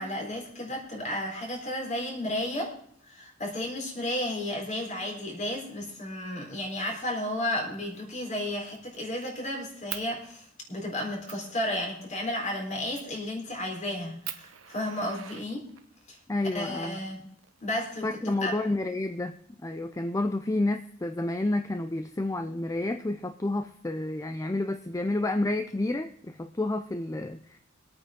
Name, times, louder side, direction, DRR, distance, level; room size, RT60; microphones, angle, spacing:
voice 1, 0.0-2.7 3.1-15.6 16.1-16.2 16.5-17.3 17.6-18.6, left 1 dB, 40° left, 0 dB, 4.0 m, -33 dB
Fire, 7.7-8.0 8.4-9.3 9.9-10.1 10.7-10.8 11.3-11.5 12.9-13.2 13.7-13.8 14.2-16.0 17.1-18.0, right 11 dB, 90° right, 1.1 m, -42 dB
voice 2, 16.3-17.0 18.0-19.3 19.6-27.6, left 2 dB, 15° left, 8 dB, 0.5 m, -30 dB
22.5 x 8.9 x 3.7 m, 0.65 s
head